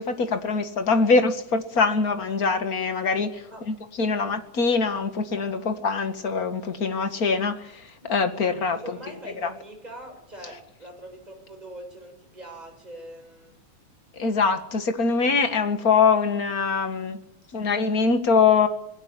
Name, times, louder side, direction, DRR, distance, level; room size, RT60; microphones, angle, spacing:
voice 1, 0.0-8.8 9.4-9.5 14.2-17.2 17.5-18.7, left 4 dB, 35° left, 1.9 m, -23 dB
voice 2, 8.7-13.6, right 1 dB, 10° right, 6.6 m, -42 dB
20.5 x 17.0 x 9.9 m
omnidirectional pair, 3.3 m